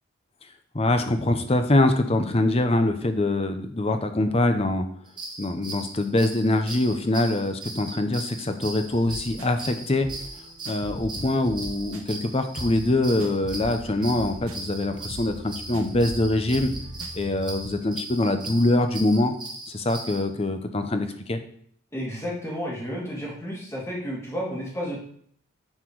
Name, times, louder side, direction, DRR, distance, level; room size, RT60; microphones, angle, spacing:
voice 1, 0.7-4.9 5.4-10.1 10.7-16.7 17.1-19.3 19.7-21.4, left 2 dB, 30° left, 7 dB, 0.7 m, -24 dB
sound 1, 5.1-20.2, right 2 dB, 20° right, 1.1 m, -39 dB
sound 2, 8.7-17.7, right 1 dB, 80° right, 1.0 m, -40 dB
voice 2, 21.9-25.0, equal, 15° left, -4 dB, 2.2 m, -32 dB
9.6 x 4.4 x 4.7 m, 0.62 s
head